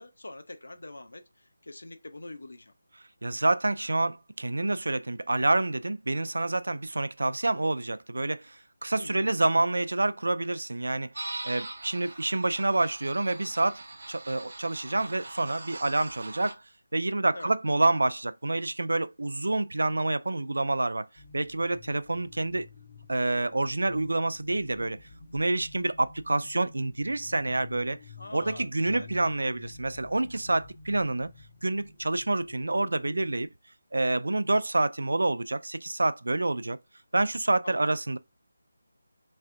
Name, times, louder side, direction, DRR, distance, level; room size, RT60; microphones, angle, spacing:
voice 1, 0.0-2.7 8.9-9.3 17.3-17.5 28.2-29.1 37.6-37.9, left 2 dB, 85° left, 0.8 m, -44 dB
voice 2, 3.2-11.1 11.4-13.8 14.1-16.5 16.9-21.1 21.3-22.7 23.1-25.0 25.3-28.0 28.3-31.3 31.6-33.5 33.9-36.8 37.1-38.2, right 2 dB, 90° right, 0.4 m, -27 dB
sound 1, 11.1-16.5, right 2 dB, 55° right, 0.9 m, -42 dB
sound 2, 21.2-33.5, left 4 dB, 25° left, 0.6 m, -51 dB
3.3 x 3.2 x 3.8 m
figure-of-eight pair, 175°, 0 cm